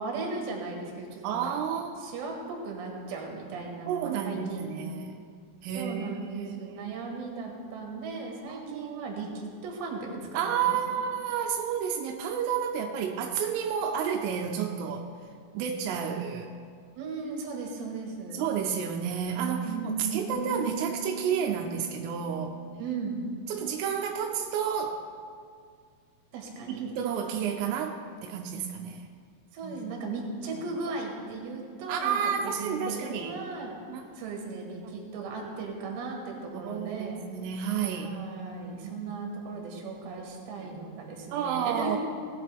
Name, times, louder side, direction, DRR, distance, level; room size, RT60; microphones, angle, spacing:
voice 1, 0.0-1.6 2.0-4.9 5.7-11.0 17.0-18.5 19.7-20.3 22.8-23.2 26.3-26.9 29.5-33.8 34.1-37.3 38.0-42.0, right 4 dB, 65° right, 0 dB, 3.5 m, -37 dB
voice 2, 1.2-2.0 3.9-5.2 5.6-7.0 8.5-9.1 10.3-15.1 15.5-16.5 18.3-22.6 23.5-25.0 26.7-29.1 29.6-29.8 30.5-30.6 31.9-33.3 33.9-34.0 34.8-34.9 36.5-38.1 38.8-39.0 40.6-40.7 41.3-42.0, right 7 dB, 85° right, 2 dB, 3.3 m, -31 dB
sound 1, 20.3-23.7, right 3 dB, 15° left, 2.1 m, -40 dB
18.0 x 8.3 x 3.4 m, 2.1 s
omnidirectional pair, 5.7 m